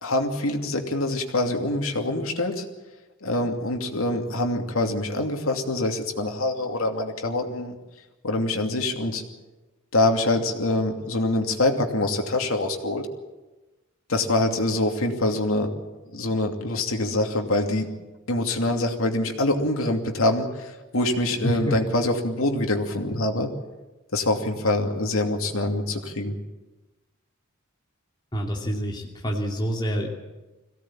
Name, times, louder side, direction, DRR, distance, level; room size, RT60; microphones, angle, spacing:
voice 1, 0.0-2.7 3.2-7.8 8.2-9.2 9.9-13.1 14.1-15.7 16.1-17.9 18.3-23.5 24.1-26.4, left 2 dB, 85° left, 3 dB, 2.7 m, -25 dB
voice 2, 21.4-21.8 28.3-30.1, equal, 20° left, -1 dB, 2.6 m, -27 dB
22.5 x 17.0 x 8.8 m, 1.1 s
head